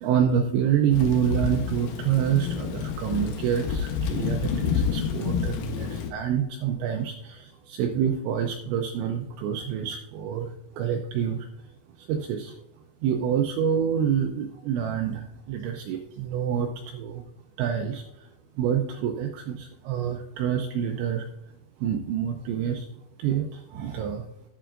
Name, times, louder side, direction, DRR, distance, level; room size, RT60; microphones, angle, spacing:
voice 1, 0.0-11.5 12.0-12.6 13.0-17.2 17.6-18.3 18.6-21.3 21.8-22.9 23.2-24.3, right 8 dB, 80° right, 4 dB, 2.7 m, -27 dB
Thunder / Rain, 0.9-6.1, left 7 dB, 80° left, 2.2 m, -29 dB
10.5 x 10.0 x 2.5 m, 0.78 s
omnidirectional pair, 5.7 m